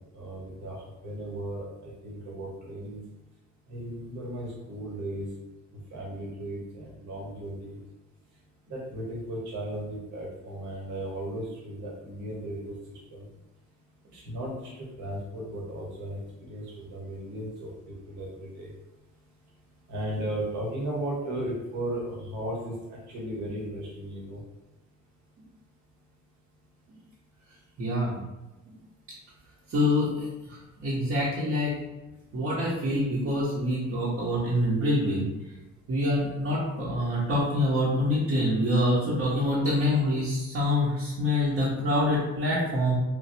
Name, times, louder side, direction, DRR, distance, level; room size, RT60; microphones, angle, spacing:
voice 1, 0.1-0.8 1.0-3.0 3.7-5.3 5.9-7.8 8.7-13.3 14.1-16.2 16.5-18.7 19.9-24.4, right 1 dB, 70° right, -4 dB, 1.1 m, -36 dB
voice 2, 27.8-28.2 29.7-31.7 32.3-35.3 35.9-42.9, left 1 dB, 50° right, -8 dB, 0.9 m, -26 dB
3.2 x 2.3 x 2.7 m, 1.0 s
cardioid pair, 90°, 30 cm